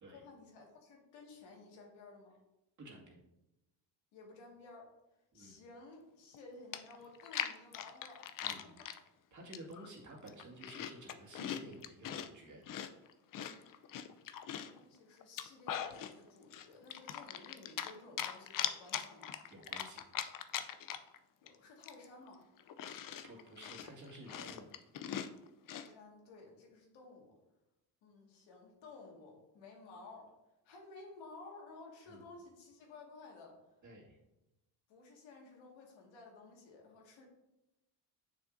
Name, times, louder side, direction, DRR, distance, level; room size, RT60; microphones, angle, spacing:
voice 1, 0.1-2.3 4.1-4.9 5.3-8.3 8.6-8.9 14.5-19.3 21.4-22.4 25.7-27.4 28.0-30.3 30.6-33.6 34.9-37.2, left 3 dB, 85° left, -1 dB, 1.9 m, -55 dB
voice 2, 2.8-3.2 5.3-5.5 8.4-8.8 9.3-12.7 19.5-20.5 23.0-24.7 32.1-32.2 33.8-34.2, right 1 dB, 40° right, -2 dB, 2.1 m, -53 dB
Chewing mastication, 6.3-6.4 6.7-9.0 9.5-9.9 10.2-12.3 12.7-14.8 15.2-16.1 16.5-17.9 18.2-21.2 21.5-21.6 21.8-25.9, left 10 dB, 50° left, 0.6 m, -41 dB
7.0 x 6.3 x 2.6 m, 0.94 s
cardioid pair, 95°, 45 cm